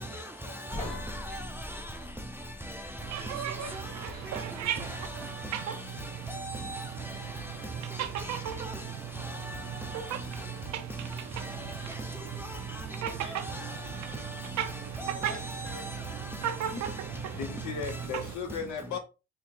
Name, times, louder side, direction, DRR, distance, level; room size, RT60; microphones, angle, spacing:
voice 1, 0.1-1.4 1.7-2.1 3.2-5.3 7.5-7.7 10.6-10.7 13.2-13.4 13.9-14.3 15.1-16.0, left 2 dB, 45° left, 1.7 m, -51 dB
sound 1, 0.7-3.8, left 1 dB, 25° left, 1.2 m, -42 dB
voice 2, 0.7-1.8 2.7-2.9 3.2-4.0 4.8-5.6 6.3-7.1 8.2-8.8 9.2-10.0 11.4-11.6 11.9-12.1 12.4-12.6 13.2-13.8 15.0-16.0, equal, 5° right, 0.5 m, -39 dB
sound 2, 3.0-18.3, right 10 dB, 65° right, 0.6 m, -37 dB
voice 3, 17.3-19.0, left 6 dB, 70° left, 0.8 m, -36 dB
4.3 x 2.0 x 3.6 m
cardioid pair, 90°, 30 cm